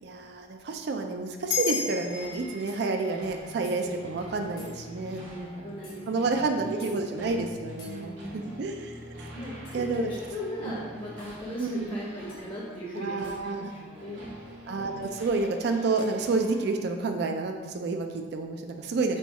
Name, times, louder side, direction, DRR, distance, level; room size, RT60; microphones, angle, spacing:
voice 1, 0.0-5.7 6.1-9.3 9.7-10.1 10.6-10.8 11.6-12.0 13.0-13.7 14.7-19.2, right 3 dB, 60° right, 4 dB, 0.4 m, -30 dB
sound 1, 1.5-6.2, left 6 dB, 75° left, 0.5 m, -36 dB
sound 2, 1.6-1.8 2.7-2.8 3.6-3.8 4.6-4.8 5.8-6.0 6.8-7.0 7.8-8.0 9.6-9.9 11.2-11.4 12.3-12.5 13.2-13.4 15.0-15.2 16.0-16.2, left 1 dB, 55° left, 1.2 m, -49 dB
sound 3, 1.8-16.7, equal, 85° right, 1.1 m, -46 dB
voice 2, 5.2-6.9 7.8-8.6 9.3-14.3 19.1-19.2, equal, 30° left, -5 dB, 0.7 m, -38 dB
4.3 x 2.3 x 4.1 m, 1.4 s
head